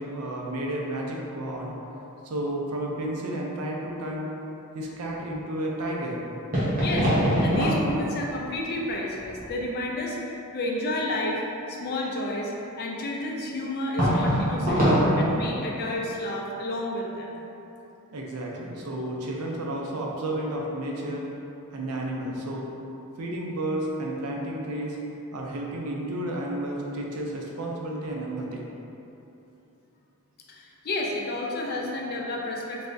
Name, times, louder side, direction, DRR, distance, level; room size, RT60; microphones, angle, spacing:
voice 1, 0.0-1.7 2.2-4.3 4.7-6.2 18.1-21.3 21.7-22.7 23.2-25.0 25.3-28.7, right 1 dB, 85° right, -2 dB, 0.5 m, -32 dB
sound 1, 6.5-8.4 8.9-9.6 14.0-15.0, equal, 40° right, 1.0 m, -23 dB
voice 2, 6.8-10.2 10.5-11.4 11.7-14.9 15.2-17.4 30.5-32.9, left 1 dB, 45° left, -2 dB, 0.4 m, -31 dB
3.4 x 3.2 x 2.6 m, 2.9 s
head